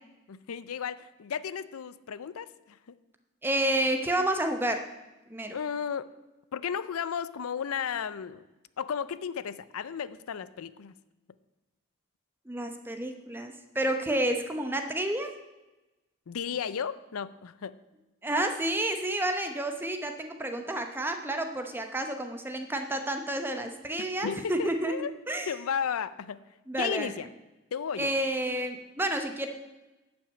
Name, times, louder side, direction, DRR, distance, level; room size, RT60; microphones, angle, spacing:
voice 1, 0.3-3.0 5.5-6.1 6.5-8.4 8.8-10.9 16.3-17.8 24.2-25.1 25.5-26.4 26.8-27.3 27.7-28.1, left 7 dB, 85° left, 16 dB, 0.5 m, -34 dB
voice 2, 3.4-4.9 5.3-5.6 12.5-15.3 18.2-25.0 25.3-25.5 26.7-27.2 28.0-29.5, right 1 dB, 10° right, 5 dB, 0.8 m, -30 dB
11.5 x 6.1 x 8.2 m, 1.1 s
head